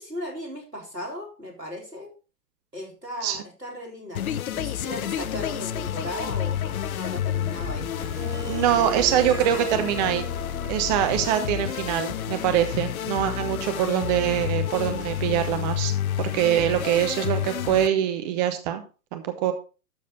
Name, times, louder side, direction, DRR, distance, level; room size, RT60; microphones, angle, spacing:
voice 1, 0.0-2.1 2.7-4.2 4.5-7.9, equal, 90° right, 0 dB, 4.2 m, -37 dB
sound 1, 4.1-17.9, left 10 dB, 65° left, 0.6 m, -30 dB
sound 2, 4.5-12.1, right 4 dB, 5° left, 1.8 m, -44 dB
Harp, 8.0-13.0, right 2 dB, 70° right, 3.1 m, -37 dB
voice 2, 8.5-10.3 10.7-15.9 16.2-18.8 19.1-19.5, right 11 dB, 25° right, 8 dB, 1.0 m, -24 dB
12.5 x 6.5 x 3.7 m, 0.35 s
figure-of-eight pair, 115°, 47 cm